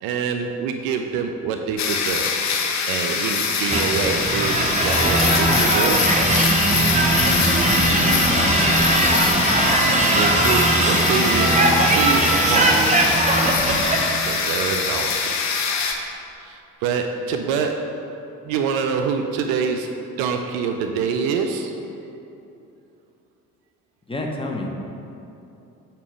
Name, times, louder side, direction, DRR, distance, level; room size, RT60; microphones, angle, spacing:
voice 1, 0.0-2.4 2.9-6.1 9.9-13.1 14.2-15.4 16.4-18.2 18.4-21.8, right 6 dB, 55° right, 5 dB, 0.5 m, -26 dB
sound 1, 1.8-15.9, left 6 dB, 40° left, 0.8 m, -23 dB
sound 2, 3.7-14.1, right 2 dB, 15° right, 0.8 m, -19 dB
voice 2, 7.8-9.2 24.1-24.7, left 2 dB, 10° left, 0 dB, 0.9 m, -30 dB
8.5 x 2.9 x 4.8 m, 2.8 s
figure-of-eight pair, 45°, 43 cm